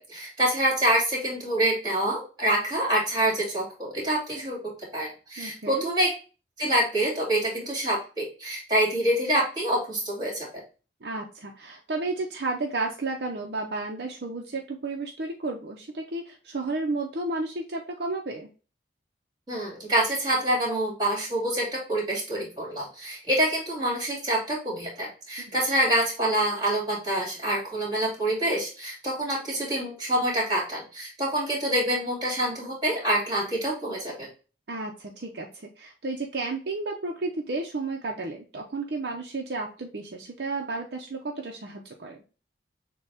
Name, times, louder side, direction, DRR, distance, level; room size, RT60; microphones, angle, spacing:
voice 1, 0.0-4.6 4.9-6.1 6.6-10.5 19.5-34.3, right 1 dB, 25° right, -2 dB, 2.4 m, -26 dB
voice 2, 5.4-5.8 11.0-18.5 25.4-25.6 34.7-42.2, right 3 dB, 60° right, 1 dB, 0.6 m, -32 dB
6.8 x 2.3 x 3.4 m, 0.35 s
head